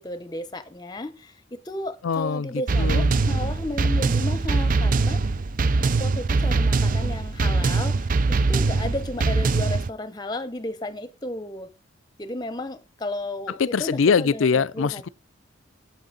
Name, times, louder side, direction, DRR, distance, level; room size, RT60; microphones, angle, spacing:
voice 1, 0.0-5.2 5.8-11.7 12.2-15.0, left 1 dB, 20° left, 0.8 m, -33 dB
voice 2, 2.0-2.5 2.8-3.1 13.6-15.1, left 5 dB, 80° left, 0.5 m, -22 dB
sound 1, 2.7-9.9, right 3 dB, 40° right, 0.5 m, -22 dB
8.6 x 7.7 x 3.9 m
head